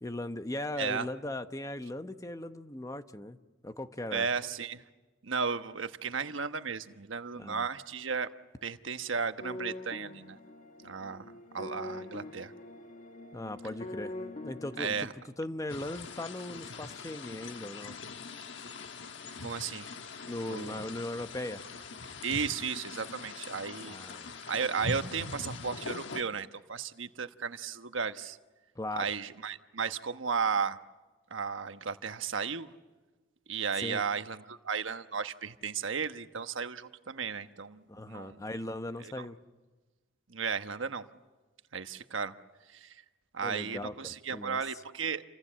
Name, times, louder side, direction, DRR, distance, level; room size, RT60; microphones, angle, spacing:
voice 1, 0.0-3.4 3.6-4.3 7.4-7.7 13.3-14.1 14.4-15.1 15.4-18.0 20.3-21.6 23.9-24.4 28.8-29.1 33.8-34.0 37.9-39.4 43.4-44.6, left 1 dB, 20° left, 9 dB, 1.0 m, -38 dB
voice 2, 0.8-1.1 4.1-4.8 5.2-8.3 8.6-10.4 10.8-11.2 11.5-12.5 14.8-15.1 19.4-19.9 20.5-20.9 22.2-24.0 24.4-28.4 28.9-30.8 31.3-32.7 33.5-38.4 39.0-39.3 40.3-41.0 41.7-42.3 42.7-42.9 43.3-45.2, right 6 dB, 90° right, 9 dB, 1.2 m, -34 dB
sound 1, 9.4-15.0, left 2 dB, 40° left, 1.4 m, -43 dB
sound 2, 15.7-26.2, left 3 dB, 70° left, 1.3 m, -42 dB
30.0 x 25.5 x 7.5 m, 1.2 s
head